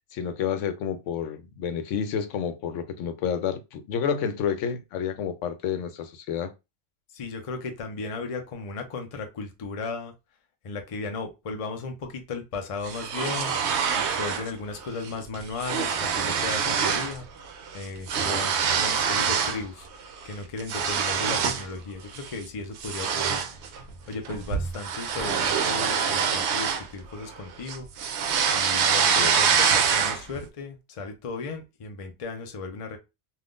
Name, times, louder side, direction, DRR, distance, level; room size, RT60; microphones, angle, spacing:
voice 1, 0.1-6.5 29.2-29.3, left 7 dB, 80° left, 0.9 m, -29 dB
voice 2, 7.1-10.1 10.6-13.5 14.0-17.3 17.7-19.9 20.2-23.7 24.1-27.9 28.5-33.0, left 4 dB, 55° left, 0.4 m, -35 dB
sound 1, 12.8-14.5 14.8-15.1 15.3-17.2 17.5-19.6 20.1-21.7 22.1-22.4 22.8-27.3 27.7-30.4, right 7 dB, 70° right, 0.8 m, -25 dB
3.5 x 2.4 x 2.4 m
omnidirectional pair, 1.3 m